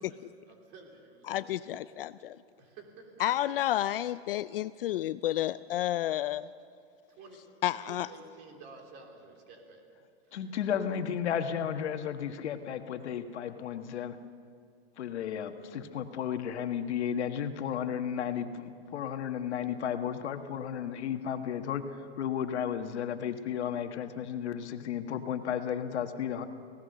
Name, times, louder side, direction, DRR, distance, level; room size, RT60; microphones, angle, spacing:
voice 1, 0.0-1.5 1.7-1.8 2.6-3.2 7.2-7.5 7.8-9.8 10.2-10.3, right 3 dB, 30° right, 2 dB, 3.3 m, -51 dB
voice 2, 1.3-2.4 3.2-6.5 7.6-8.1, left 13 dB, 55° left, 15 dB, 0.5 m, -31 dB
voice 3, 10.3-14.2 15.0-26.5, left 8 dB, 80° left, 7 dB, 1.6 m, -33 dB
26.0 x 18.0 x 6.8 m, 2.3 s
supercardioid pair, 165°, 33 cm